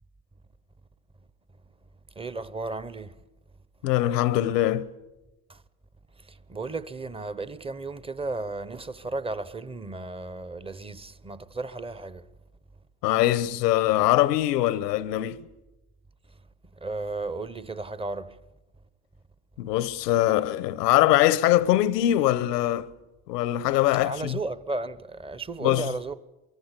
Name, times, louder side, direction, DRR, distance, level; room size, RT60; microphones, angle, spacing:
voice 1, 2.2-3.1 5.5-5.6 6.2-12.2 16.8-18.4 24.0-26.1, right 3 dB, 10° right, 0.9 m, -34 dB
voice 2, 3.8-4.9 13.0-15.4 19.6-22.9 23.3-24.4 25.6-25.9, left 14 dB, 85° left, 1.1 m, -22 dB
24.0 x 23.0 x 8.3 m
supercardioid pair, 120°, 47 cm